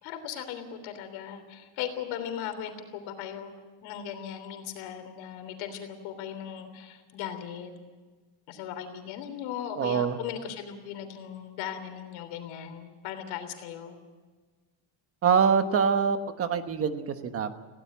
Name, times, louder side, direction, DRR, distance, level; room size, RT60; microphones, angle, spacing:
voice 1, 0.0-7.7 8.5-14.0, left 9 dB, 70° left, 7 dB, 3.4 m, -38 dB
voice 2, 9.8-10.2 15.2-17.5, right 6 dB, 30° right, 9 dB, 1.2 m, -25 dB
19.0 x 17.0 x 9.4 m, 1.4 s
cardioid pair, 175°, 49 cm